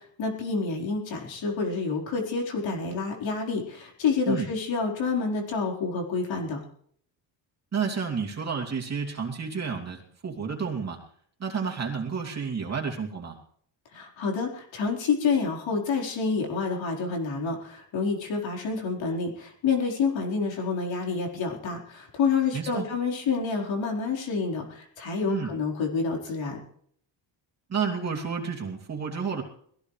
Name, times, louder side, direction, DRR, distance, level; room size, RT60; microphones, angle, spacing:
voice 1, 0.2-6.6 13.9-26.6, left 4 dB, 75° left, 0 dB, 4.5 m, -28 dB
voice 2, 7.7-11.0 11.4-13.4 22.5-22.9 25.3-25.5 27.7-29.4, right 6 dB, 35° right, 0 dB, 2.9 m, -30 dB
21.5 x 16.0 x 3.3 m, 0.63 s
cardioid pair, 135°, 46 cm